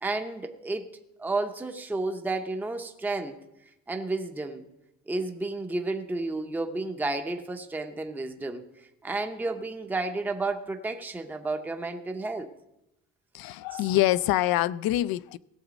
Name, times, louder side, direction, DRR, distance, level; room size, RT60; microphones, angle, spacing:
voice 1, 0.0-0.9 1.2-3.4 3.9-4.6 5.1-8.6 9.0-12.5 13.7-13.8, right 2 dB, 5° right, 0.6 m, -31 dB
voice 2, 13.3-15.4, left 14 dB, 80° left, 0.5 m, -25 dB
17.0 x 7.3 x 5.1 m
cardioid pair, 165°, 35 cm